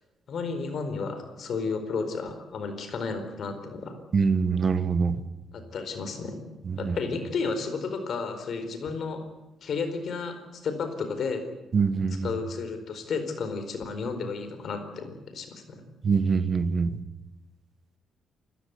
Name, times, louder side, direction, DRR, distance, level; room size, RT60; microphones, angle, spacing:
voice 1, 0.3-3.9 5.5-6.4 6.8-9.2 9.6-11.4 12.2-15.8, left 4 dB, 45° left, 8 dB, 4.5 m, -32 dB
voice 2, 4.1-5.1 6.7-7.0 11.7-12.3 16.0-17.0, right 5 dB, 30° right, 12 dB, 1.4 m, -24 dB
28.0 x 15.5 x 9.6 m, 1.0 s
cardioid pair, 175°, 0 cm